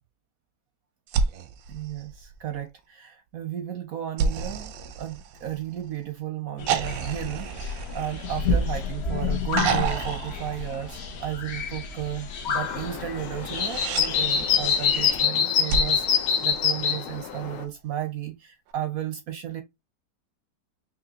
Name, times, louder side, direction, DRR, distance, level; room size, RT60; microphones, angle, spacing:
sound 1, 1.1-2.7 4.2-5.9 6.7-8.9 9.5-11.4 13.3-14.1 15.7-17.2 18.7-18.8, right 6 dB, 90° right, 1.4 m, -31 dB
voice 1, 1.7-4.7 5.0-19.6, right 11 dB, 70° right, 0.9 m, -34 dB
sound 2, 6.6-15.2, left 4 dB, 60° left, 0.7 m, -31 dB
sound 3, 12.6-17.6, left 7 dB, 75° left, 1.4 m, -25 dB
5.2 x 2.8 x 2.8 m
omnidirectional pair, 2.0 m